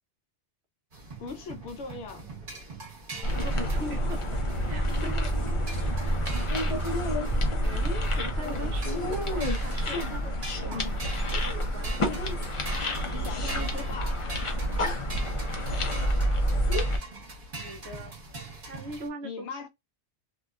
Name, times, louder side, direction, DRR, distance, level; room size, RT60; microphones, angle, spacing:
sound 1, 0.9-19.1, right 3 dB, 50° right, 1.2 m, -42 dB
voice 1, 1.2-2.3 8.6-8.7 10.6-11.1 13.1-14.3 19.2-19.7, left 5 dB, 80° left, 0.9 m, -39 dB
sound 2, 3.2-17.0, equal, 35° left, 0.5 m, -28 dB
voice 2, 3.2-4.4 4.7-5.2 5.7-6.7 7.6-12.0 17.6-19.5, right 1 dB, 70° right, 0.9 m, -41 dB
2.8 x 2.2 x 2.2 m
omnidirectional pair, 1.2 m